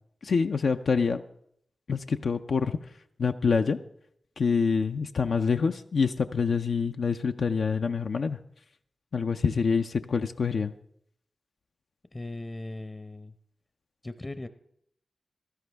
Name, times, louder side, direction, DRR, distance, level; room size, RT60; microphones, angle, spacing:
voice 1, 0.2-1.2 1.9-2.8 3.2-3.8 4.4-8.4 9.1-10.7, left 5 dB, 75° left, 6 dB, 0.4 m, -26 dB
voice 2, 12.1-13.3 14.0-14.5, left 2 dB, 35° left, 10 dB, 0.7 m, -38 dB
16.0 x 12.5 x 3.4 m, 0.72 s
cardioid pair, 40°, 0 cm